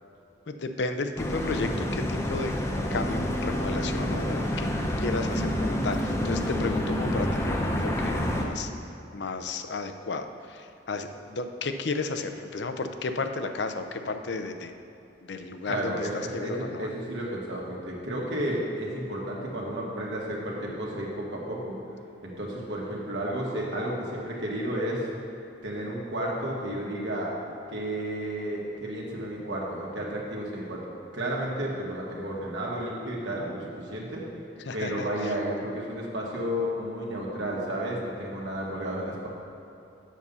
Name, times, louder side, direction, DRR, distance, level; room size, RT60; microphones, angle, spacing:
voice 1, 0.5-2.5 2.9-4.7 5.0-8.7 9.1-14.7 15.3-16.9 34.7-35.1, left 3 dB, 70° left, 7 dB, 0.6 m, -33 dB
sound 1, 1.2-8.5, left 1 dB, 15° left, 0.7 m, -28 dB
voice 2, 15.6-21.8 22.2-25.1 25.6-27.3 27.7-30.9 31.1-34.2 34.7-39.3, right 1 dB, 80° right, -3 dB, 1.7 m, -32 dB
7.4 x 5.5 x 6.8 m, 2.8 s
head